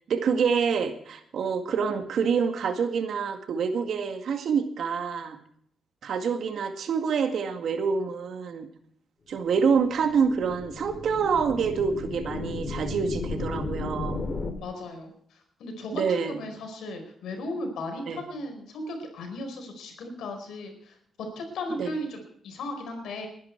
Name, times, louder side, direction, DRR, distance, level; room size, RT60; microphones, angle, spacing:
voice 1, 0.1-5.4 6.0-8.7 9.3-14.2 15.9-16.4 18.1-18.2 21.8-21.9, right 6 dB, 70° right, 7 dB, 2.0 m, -26 dB
sound 1, 9.6-14.5, left 3 dB, 40° left, 2.8 m, -34 dB
voice 2, 14.5-20.9 21.3-23.3, left 1 dB, 80° left, 4 dB, 4.7 m, -36 dB
20.5 x 10.5 x 4.7 m, 0.65 s
cardioid pair, 65°, 0 cm